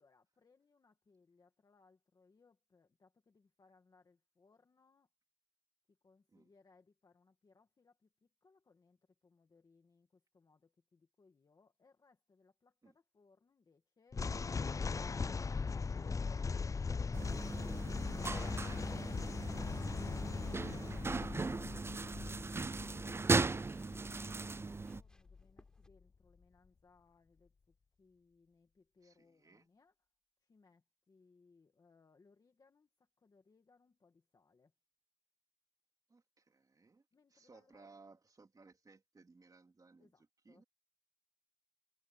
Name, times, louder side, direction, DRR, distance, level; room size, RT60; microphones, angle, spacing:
voice 1, 0.0-5.1 5.9-14.3 23.1-23.7 24.1-29.9 30.4-34.7 37.1-37.9 40.0-40.6, left 4 dB, 85° left, 2.0 m, -70 dB
sound 1, 14.1-25.4, left 4 dB, 60° left, 0.4 m, -40 dB
sound 2, 17.1-25.0, right 3 dB, 40° right, 0.3 m, -38 dB
sound 3, 20.2-25.9, left 1 dB, 10° left, 5.1 m, -69 dB
voice 2, 29.0-29.7 36.1-40.6, right 3 dB, 70° right, 3.6 m, -63 dB
wide cardioid pair, 50°, 6 cm